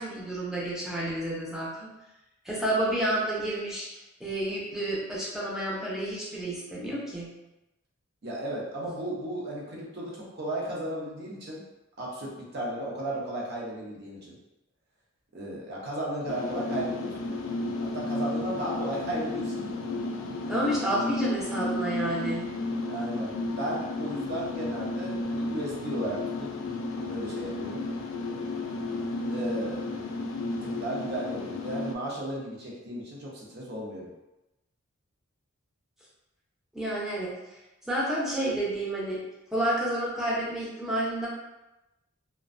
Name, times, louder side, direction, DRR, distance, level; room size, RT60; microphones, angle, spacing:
voice 1, 0.0-1.9 2.4-7.3 20.5-22.5 36.7-37.3 37.9-39.2 39.5-41.3, right 1 dB, ahead, -6 dB, 0.5 m, -30 dB
voice 2, 8.2-11.6 12.0-14.3 15.3-17.2 17.8-19.9 22.9-26.5 27.1-27.8 29.3-30.0 30.5-34.1, right 1 dB, 50° right, -4 dB, 0.6 m, -35 dB
sound 1, 16.3-31.9, left 2 dB, 65° left, 0.3 m, -33 dB
2.4 x 2.2 x 2.4 m, 0.97 s
head